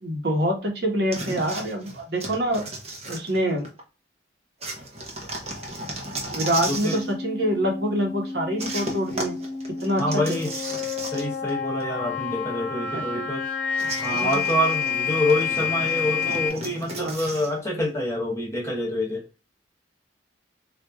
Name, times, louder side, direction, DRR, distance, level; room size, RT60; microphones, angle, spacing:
voice 1, 0.0-2.6 3.1-3.6 6.3-9.4 9.8-10.4 12.9-13.2 14.1-14.4 17.0-17.2, equal, 55° right, 1.0 m, -26 dB
sound 1, 1.1-3.8 4.6-7.1 8.6-11.5 11.8-11.9 13.8-17.5, right 2 dB, 30° right, 0.8 m, -35 dB
voice 2, 6.7-7.0 10.0-10.5 11.1-13.4 14.0-19.2, left 1 dB, 15° left, 0.9 m, -26 dB
sound 2, 6.8-16.5, left 6 dB, 45° left, 1.1 m, -29 dB
4.5 x 2.5 x 2.2 m
head